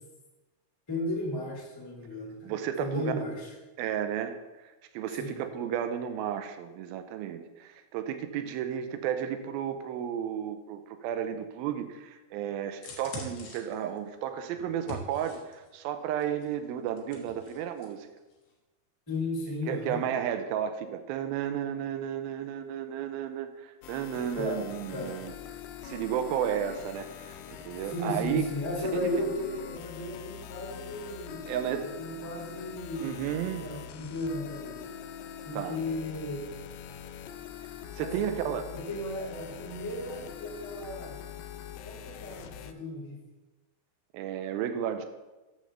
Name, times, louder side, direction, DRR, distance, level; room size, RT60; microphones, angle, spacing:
voice 1, 0.9-2.5 2.8-3.5 5.1-5.4 19.1-20.0 24.4-24.6 24.9-25.1 27.9-31.5 31.8-34.8 35.4-36.5 38.0-41.2 41.8-43.2, left 1 dB, 5° left, -4 dB, 2.5 m, -35 dB
voice 2, 2.4-3.1 3.8-4.4 4.9-18.1 19.7-25.3 25.8-27.4 27.7-28.5 28.9-29.1 31.5-31.9 33.0-33.7 35.5-35.8 37.9-38.6 44.1-45.1, right 9 dB, 80° right, 8 dB, 2.3 m, -33 dB
sound 1, 12.7-15.7 16.2-17.9 18.2-18.3, left 2 dB, 60° left, 1.8 m, -44 dB
sound 2, 23.8-42.7, left 9 dB, 85° left, 2.0 m, -44 dB
6.5 x 6.3 x 6.8 m, 1.1 s
omnidirectional pair, 4.6 m